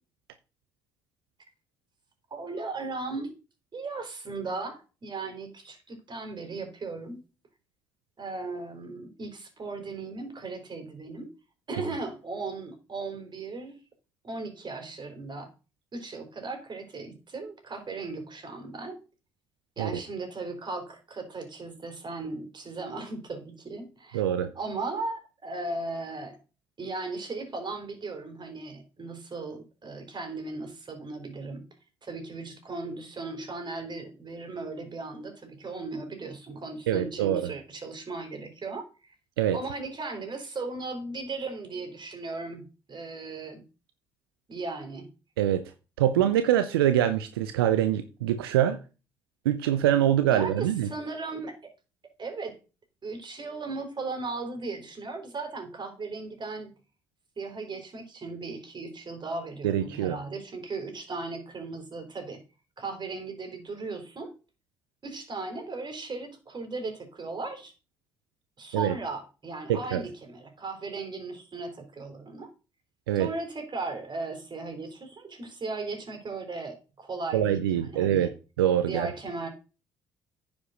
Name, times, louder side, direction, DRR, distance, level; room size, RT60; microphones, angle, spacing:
voice 1, 2.3-3.3 3.7-7.2 8.2-11.3 11.7-13.8 14.2-15.5 15.9-19.0 19.8-24.2 24.5-26.4 26.8-31.7 32.0-39.1 39.5-43.6 44.5-45.1 50.3-51.5 52.2-52.6 53.0-56.7 57.4-62.4 62.8-64.3 65.0-67.7 68.6-72.5 73.2-78.3 78.9-79.5, right 3 dB, 40° right, 5 dB, 4.0 m, -37 dB
voice 2, 24.1-24.5 36.9-37.5 39.4-39.6 45.4-45.6 46.0-48.8 49.4-50.9 59.6-60.2 68.7-68.9 69.7-70.0 73.1-73.3 77.3-78.3 78.6-79.1, right 11 dB, 85° right, 10 dB, 0.6 m, -24 dB
9.6 x 5.2 x 6.4 m, 0.33 s
hypercardioid pair, 50°, 12 cm